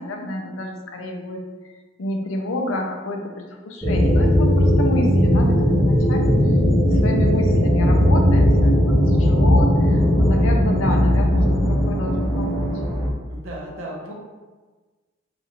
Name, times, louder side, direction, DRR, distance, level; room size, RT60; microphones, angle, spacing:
voice 1, 0.0-1.4 2.0-6.3 6.8-12.7, left 1 dB, 70° left, 3 dB, 0.5 m, -29 dB
sound 1, 3.8-13.1, equal, ahead, 0.7 m, -17 dB
voice 2, 13.3-14.1, right 1 dB, 75° right, -3 dB, 0.8 m, -34 dB
3.0 x 2.5 x 4.1 m, 1.3 s
head